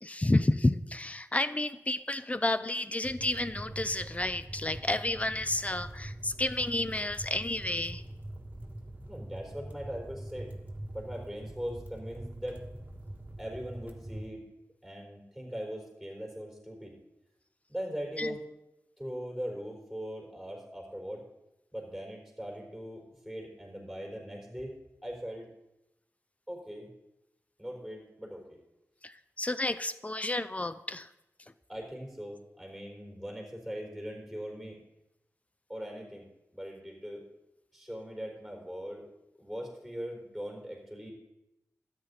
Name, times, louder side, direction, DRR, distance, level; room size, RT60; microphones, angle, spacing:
voice 1, 0.0-8.0 18.2-18.3 29.0-31.1, left 2 dB, 25° left, 14 dB, 0.6 m, -31 dB
sound 1, 3.0-14.3, right 1 dB, 25° right, 1.5 m, -44 dB
voice 2, 9.1-10.5 10.9-12.6 13.4-14.5 14.8-16.9 17.7-18.4 19.0-21.3 21.7-24.7 25.0-25.5 26.5-26.9 27.6-28.6 31.7-34.8 35.7-37.2 37.7-39.1 39.4-41.1, equal, ahead, -1 dB, 4.2 m, -40 dB
13.0 x 9.5 x 4.1 m, 0.90 s
wide cardioid pair, 65°, 6 cm